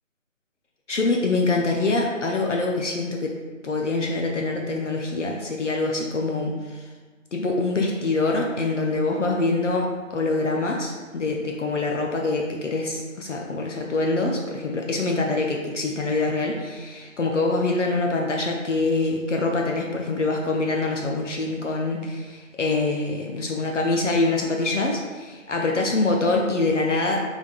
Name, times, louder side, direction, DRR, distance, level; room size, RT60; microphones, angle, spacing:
voice 1, 0.9-3.3 3.6-6.9 7.3-27.2, left 3 dB, 65° left, 0 dB, 0.6 m, -25 dB
3.4 x 2.4 x 3.8 m, 1.4 s
figure-of-eight pair, 175°, 40 cm